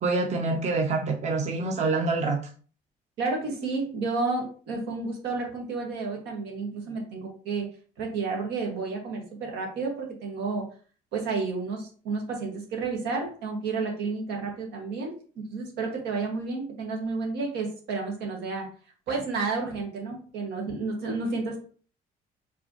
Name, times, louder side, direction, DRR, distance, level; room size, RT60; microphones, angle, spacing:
voice 1, 0.0-2.4, right 3 dB, 45° right, 1 dB, 1.0 m, -26 dB
voice 2, 3.2-7.7 8.0-10.6 11.1-18.6 19.1-21.6, right 4 dB, 85° right, 0 dB, 1.9 m, -31 dB
4.9 x 3.5 x 3.1 m, 0.41 s
cardioid pair, 110°, 17 cm